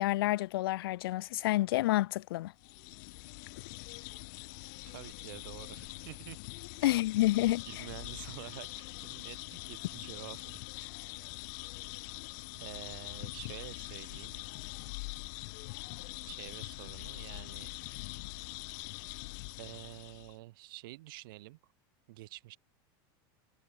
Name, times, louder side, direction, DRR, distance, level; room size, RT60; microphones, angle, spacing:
voice 1, 0.0-2.5 6.8-7.6, left 17 dB, 85° left, 1.2 m, -29 dB
sound 1, 2.6-20.4, left 30 dB, 55° left, 2.2 m, -44 dB
voice 2, 4.9-6.4 6.8-7.0 7.6-10.5 12.5-14.4 16.3-17.7 19.6-21.6 22.1-22.6, right 20 dB, 70° right, 2.5 m, -48 dB
supercardioid pair, 165°, 12 cm